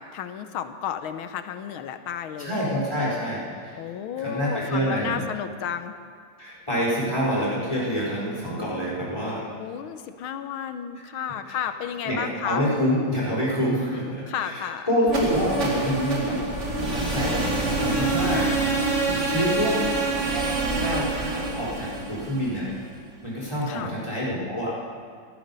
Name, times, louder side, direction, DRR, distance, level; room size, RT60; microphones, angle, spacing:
voice 1, 0.0-2.7 3.7-5.9 9.6-12.6 14.1-14.9 19.1-20.0 23.7-23.9, left 9 dB, 80° left, 10 dB, 1.6 m, -33 dB
voice 2, 2.4-3.8 4.2-5.2 6.4-9.4 11.4-11.6 12.0-14.6 14.9-16.4 16.8-19.0 19.3-19.7 20.3-20.4 20.8-22.7 23.2-24.8, equal, 15° left, -6 dB, 4.1 m, -27 dB
sound 1, 15.0-23.0, right 2 dB, 35° right, 2.1 m, -26 dB
14.5 x 14.0 x 5.4 m, 2.1 s
omnidirectional pair, 2.3 m